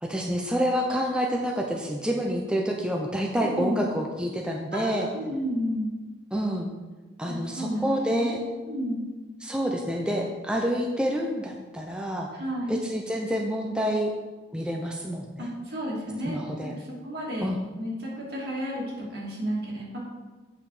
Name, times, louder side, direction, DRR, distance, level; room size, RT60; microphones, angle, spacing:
voice 1, 0.0-5.1 6.3-6.7 7.2-8.4 9.4-12.3 12.7-14.1 14.5-15.5 16.2-16.8 17.4-17.6, equal, 5° right, 0 dB, 0.6 m, -28 dB
voice 2, 3.4-3.8 4.7-5.9 7.3-8.4 8.7-9.1 12.3-12.8 15.4-17.5 17.8-20.0, equal, 65° right, -5 dB, 2.7 m, -32 dB
8.1 x 5.5 x 4.9 m, 1.3 s
head